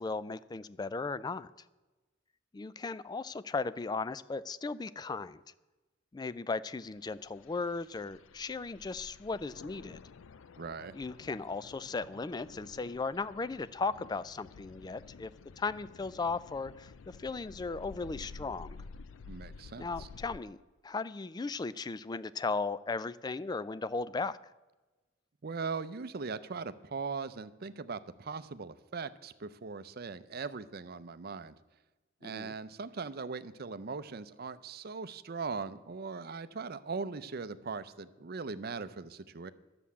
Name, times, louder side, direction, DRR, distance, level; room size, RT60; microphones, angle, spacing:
voice 1, 0.0-1.5 2.5-5.4 6.1-10.0 10.9-15.3 15.6-18.8 19.8-20.6 20.8-24.4 32.2-32.5, left 4 dB, 20° left, 17 dB, 0.3 m, -36 dB
sound 1, 7.0-20.4, left 4 dB, 80° left, 0.5 m, -51 dB
voice 2, 10.6-10.9 19.3-20.1 25.4-31.6 32.2-39.5, right 4 dB, 50° right, 13 dB, 0.6 m, -40 dB
11.5 x 6.9 x 8.5 m, 1.2 s
head